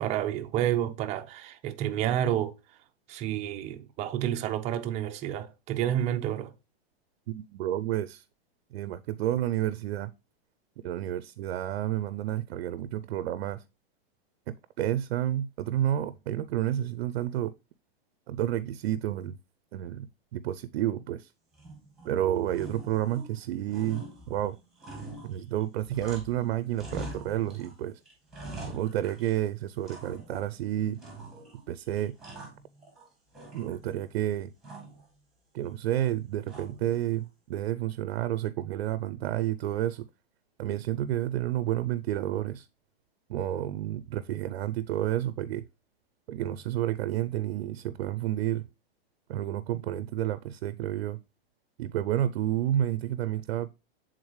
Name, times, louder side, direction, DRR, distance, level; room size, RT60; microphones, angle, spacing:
voice 1, 0.0-2.5 3.1-6.5, right 11 dB, 20° right, 0.5 m, -29 dB
voice 2, 7.3-8.2 8.7-10.1 10.8-13.6 14.5-17.5 18.3-19.4 19.7-21.3 22.0-24.6 25.2-28.0 28.7-31.0 31.7-32.1 33.5-34.5 35.5-40.1 40.6-42.7 43.3-45.7 46.3-48.7 49.3-51.2 51.8-53.7, right 12 dB, 80° right, 0.5 m, -30 dB
sound 1, 21.5-22.1 22.5-23.4 23.7-26.4 26.7-27.7 28.0-29.4 29.9-30.5 31.0-31.6 32.0-33.0 33.3-34.1 34.6-35.0 36.5-37.0, right 2 dB, ahead, 2.2 m, -44 dB
8.0 x 3.8 x 3.1 m
hypercardioid pair, 145°, 30 cm